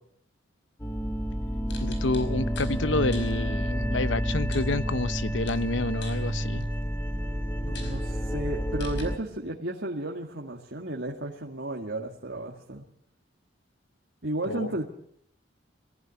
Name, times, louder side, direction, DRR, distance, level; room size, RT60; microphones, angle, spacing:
sound 1, 0.8-9.2, equal, 10° left, 1.4 m, -29 dB
sound 2, 1.7-2.8 3.1-3.3 4.5-5.2 5.5-6.8 7.3-7.4 7.7-8.0 8.8-9.0, left 4 dB, 65° left, 4.9 m, -45 dB
voice 1, 1.8-6.7 14.5-14.7, left 2 dB, 80° left, 13 dB, 1.0 m, -29 dB
voice 2, 7.6-12.8 14.2-14.9, right 1 dB, 65° right, -1 dB, 2.1 m, -33 dB
21.5 x 15.0 x 9.7 m, 0.68 s
head